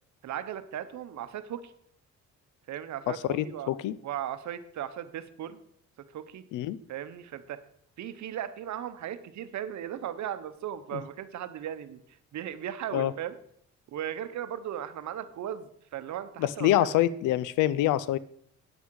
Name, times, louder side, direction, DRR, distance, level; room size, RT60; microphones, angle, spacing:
voice 1, 0.2-1.7 2.7-3.7 4.0-5.6 6.1-6.4 6.9-7.6 8.0-12.0 12.3-13.4 13.9-16.8, right 10 dB, 70° right, 12 dB, 0.9 m, -37 dB
voice 2, 3.1-3.9 6.5-6.8 10.9-11.0 12.9-13.1 16.4-18.2, left 13 dB, 90° left, 18 dB, 0.5 m, -26 dB
9.9 x 8.2 x 4.7 m, 0.68 s
cardioid pair, 90°, 30 cm